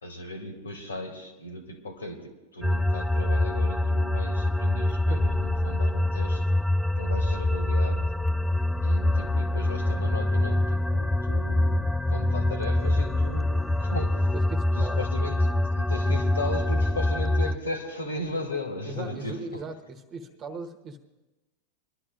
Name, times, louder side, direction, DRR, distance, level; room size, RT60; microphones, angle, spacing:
voice 1, 0.0-6.5 7.0-8.1 8.8-14.2 14.7-19.4, left 1 dB, 75° left, 4 dB, 1.9 m, -36 dB
sound 1, 2.6-17.6, left 1 dB, ahead, 0.4 m, -25 dB
voice 2, 14.3-15.0 18.9-21.1, right 3 dB, 30° right, 6 dB, 1.2 m, -38 dB
23.5 x 12.0 x 2.5 m, 1.1 s
figure-of-eight pair, 90°, 0 cm